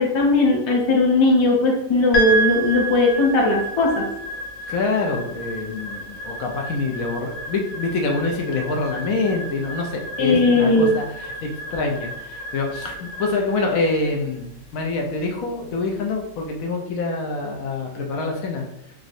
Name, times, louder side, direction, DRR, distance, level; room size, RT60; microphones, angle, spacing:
voice 1, 0.0-4.0 10.2-10.9, left 2 dB, 30° left, -1 dB, 0.5 m, -18 dB
sound 1, 2.1-16.5, right 2 dB, 60° left, 0.9 m, -31 dB
voice 2, 4.7-11.0 11.4-18.6, left 3 dB, 85° left, 1 dB, 1.1 m, -26 dB
3.7 x 3.1 x 2.5 m, 0.80 s
omnidirectional pair, 1.4 m